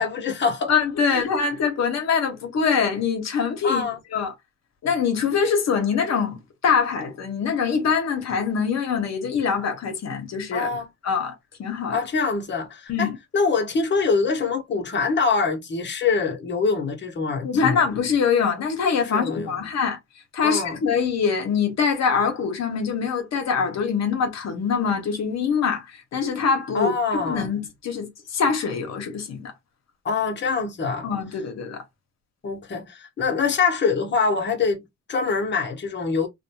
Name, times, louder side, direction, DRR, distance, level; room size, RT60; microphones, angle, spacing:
voice 1, 0.0-0.7 1.1-1.2 3.6-4.0 10.5-10.9 11.9-17.9 19.0-19.5 20.4-20.8 26.7-27.5 30.0-31.1 32.4-36.3, left 4 dB, 35° left, 0.9 m, -24 dB
voice 2, 0.7-3.8 4.1-4.3 4.8-6.4 6.6-10.8 11.0-11.3 11.6-12.0 12.9-13.2 17.4-20.0 20.3-29.5 31.0-31.8, left 6 dB, 60° left, 0.9 m, -24 dB
2.6 x 2.2 x 2.7 m
cardioid pair, 90°, 30 cm